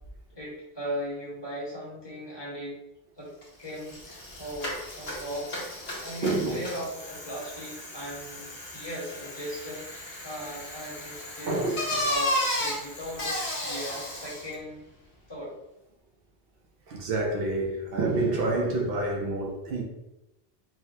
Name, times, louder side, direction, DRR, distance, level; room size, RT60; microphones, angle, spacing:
voice 1, 0.3-2.8 3.2-3.3 3.6-5.7 6.0-14.8 15.3-15.6, equal, 25° left, -8 dB, 1.0 m, -38 dB
Bicycle, 3.4-3.5 3.8-14.5, left 1 dB, 90° left, 1.1 m, -34 dB
voice 2, 6.2-6.7 11.5-12.0 16.9-19.8, right 2 dB, 70° right, 0 dB, 0.7 m, -28 dB
3.9 x 2.0 x 2.7 m, 0.94 s
omnidirectional pair, 1.1 m